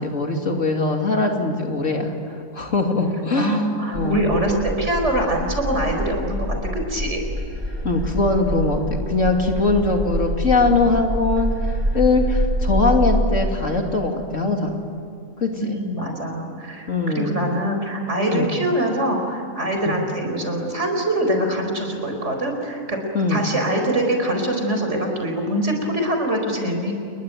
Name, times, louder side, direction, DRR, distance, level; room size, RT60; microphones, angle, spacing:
voice 1, 0.0-2.1 2.5-4.3 7.8-11.5 11.9-14.7 15.4-15.8 16.9-17.4 18.3-18.5 19.8-19.9 23.1-23.4, left 3 dB, 65° left, 2 dB, 3.1 m, -21 dB
voice 2, 3.3-7.2 15.6-16.9 17.1-23.0 23.3-26.9, right 1 dB, 60° right, 3 dB, 5.1 m, -23 dB
sound 1, 3.9-13.2, equal, 30° right, 5.9 m, -26 dB
29.0 x 22.0 x 9.3 m, 2.6 s
omnidirectional pair, 1.4 m